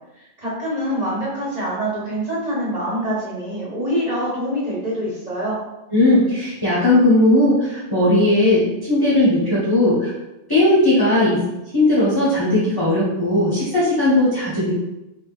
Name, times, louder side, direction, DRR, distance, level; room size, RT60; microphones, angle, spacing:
voice 1, 0.2-5.6, equal, 30° right, -8 dB, 1.6 m, -25 dB
voice 2, 5.9-10.1 10.5-11.4 11.7-14.7, left 1 dB, 15° left, -9 dB, 1.3 m, -17 dB
3.8 x 3.0 x 4.1 m, 0.95 s
omnidirectional pair, 1.4 m